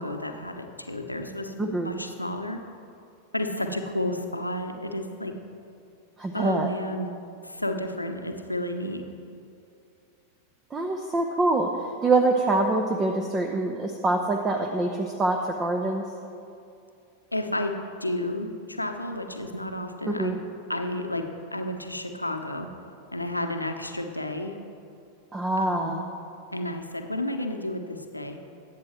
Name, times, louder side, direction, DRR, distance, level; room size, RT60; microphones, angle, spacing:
voice 1, 0.0-2.6 3.3-5.3 6.3-7.1 7.4-9.0 17.3-20.3 20.7-22.7 23.1-24.5 25.6-26.0 26.5-28.4, left 1 dB, 85° left, 5 dB, 1.0 m, -31 dB
voice 2, 1.6-1.9 6.2-6.7 10.7-16.1 20.1-20.4 25.3-26.1, right 2 dB, 20° right, 4 dB, 0.9 m, -25 dB
21.5 x 8.7 x 3.2 m, 2.6 s
figure-of-eight pair, 90°, 0 cm